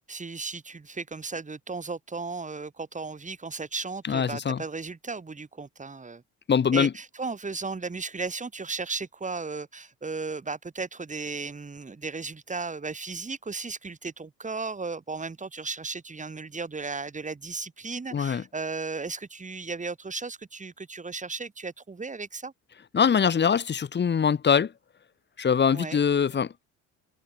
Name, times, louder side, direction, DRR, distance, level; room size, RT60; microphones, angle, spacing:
voice 1, 0.1-6.2 6.7-22.5 25.7-26.0, right 4 dB, 20° right, 1.8 m, -35 dB
voice 2, 4.1-4.6 6.5-6.9 18.1-18.4 22.9-24.7 25.4-26.5, left 7 dB, 30° left, 1.0 m, -23 dB
supercardioid pair, 65°, 34 cm